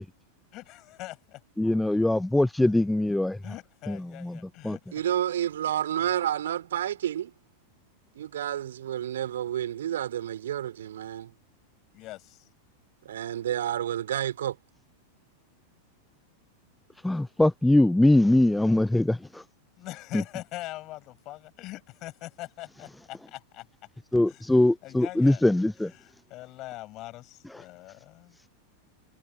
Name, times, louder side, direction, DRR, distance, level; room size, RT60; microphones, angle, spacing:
voice 1, 0.5-1.4 3.4-4.8 6.0-6.1 11.9-12.4 19.8-23.7 24.3-24.4 24.8-25.4 25.8-28.4, left 18 dB, 40° left, 7.5 m, -42 dB
voice 2, 1.6-3.4 3.9-4.4 4.6-4.8 17.0-19.4 24.1-25.9, left 1 dB, 5° left, 0.4 m, -22 dB
voice 3, 4.9-7.3 8.1-11.3 13.0-14.6, right 11 dB, 60° right, 4.0 m, -30 dB
figure-of-eight pair, 90°, 0 cm